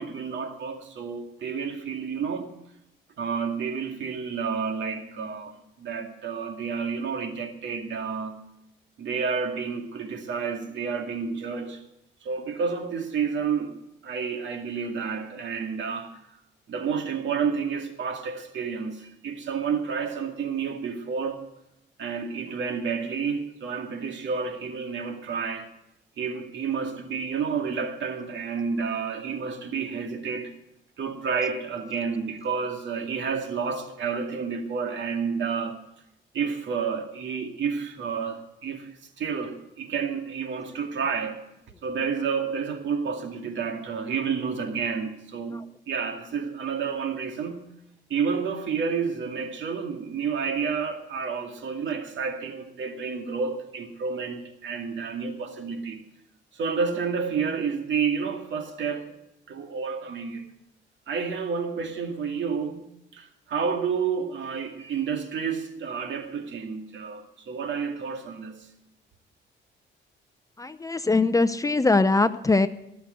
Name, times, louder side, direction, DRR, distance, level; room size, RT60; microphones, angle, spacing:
voice 1, 0.0-2.5 3.2-8.4 9.0-11.8 12.2-13.7 14.0-16.1 16.7-21.5 22.0-25.7 26.2-30.5 31.0-35.8 36.3-38.9 39.2-41.5 41.8-45.6 45.9-47.6 48.1-56.0 56.5-59.1 59.5-60.5 61.1-62.8 63.1-68.7, right 6 dB, 70° right, 2.1 m, -30 dB
voice 2, 70.6-72.7, left 3 dB, 15° left, 0.6 m, -21 dB
18.0 x 6.8 x 7.8 m
cardioid pair, 90°, 20 cm